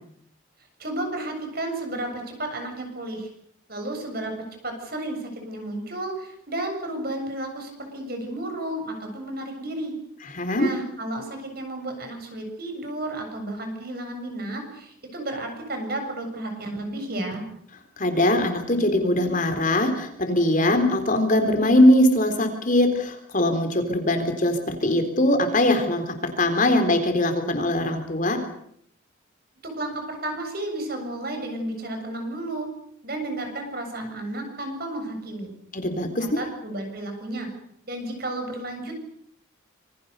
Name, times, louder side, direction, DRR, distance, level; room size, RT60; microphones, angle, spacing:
voice 1, 0.8-3.3 3.7-4.3 4.6-9.9 10.5-17.4 29.6-32.7 33.0-35.5 36.2-37.5 37.8-38.9, right 1 dB, 45° right, 4 dB, 7.4 m, -32 dB
voice 2, 10.2-10.7 18.0-28.4 35.7-36.4, left 1 dB, 40° left, 6 dB, 3.8 m, -21 dB
26.5 x 24.0 x 6.9 m, 0.69 s
head